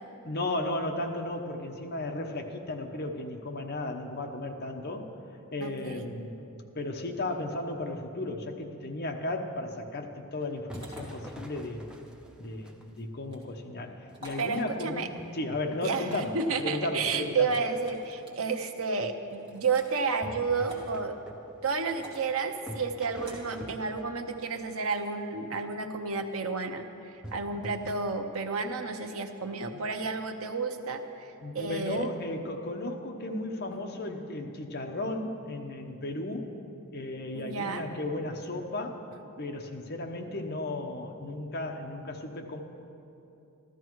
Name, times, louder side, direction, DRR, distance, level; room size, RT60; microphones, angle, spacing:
voice 1, 0.2-5.1 5.5-6.4 6.7-11.8 12.4-17.5 29.7-29.8 31.4-36.5 36.9-39.1 39.4-42.6, left 2 dB, 50° left, 3 dB, 1.0 m, -35 dB
voice 2, 5.6-6.1 14.4-15.1 15.8-21.1 21.6-26.8 27.3-32.1 37.3-37.8, right 4 dB, 75° right, 6 dB, 0.9 m, -31 dB
sound 1, 10.3-13.1 13.7-13.8 14.3-16.6 20.2-22.3 22.7-24.4 27.2-28.0, equal, 5° right, 0.6 m, -45 dB
sound 2, 10.7-11.0 13.2-13.5 14.1-14.5 16.0-16.4 17.4-18.3 19.3-19.9 20.7-20.9 21.9-22.3 23.2-23.5 24.4-25.1, equal, 25° right, 2.3 m, -48 dB
14.5 x 13.0 x 4.7 m, 2.7 s
head